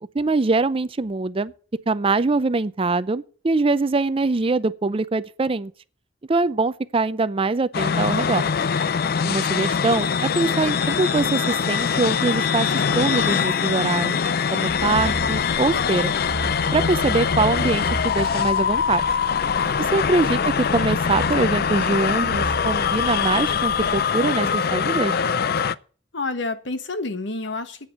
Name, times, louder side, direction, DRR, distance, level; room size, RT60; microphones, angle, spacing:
voice 1, 0.1-1.5 1.9-5.7 6.3-8.4 9.2-14.2 14.5-16.2 16.7-19.0 19.9-25.2, right 3 dB, 30° right, 0.5 m, -23 dB
sound 1, 7.7-25.7, left 6 dB, 55° left, 0.5 m, -23 dB
sound 2, 14.7-24.0, right 1 dB, 25° left, 2.2 m, -34 dB
voice 2, 19.6-19.9 26.1-27.9, left 3 dB, 75° left, 1.3 m, -29 dB
8.9 x 7.1 x 8.2 m
head